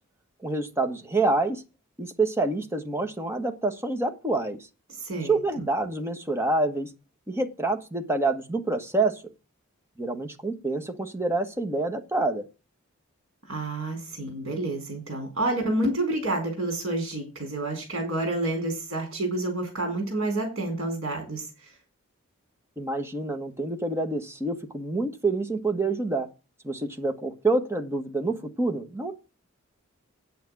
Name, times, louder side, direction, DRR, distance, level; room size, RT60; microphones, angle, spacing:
voice 1, 0.4-1.6 2.0-4.6 5.2-6.9 7.3-9.2 10.0-12.4 22.8-26.3 26.6-29.1, right 2 dB, 10° right, 6 dB, 1.5 m, -27 dB
voice 2, 5.0-5.6 13.5-21.7, right 2 dB, 65° right, 2 dB, 4.7 m, -29 dB
9.4 x 7.7 x 6.1 m, 0.29 s
head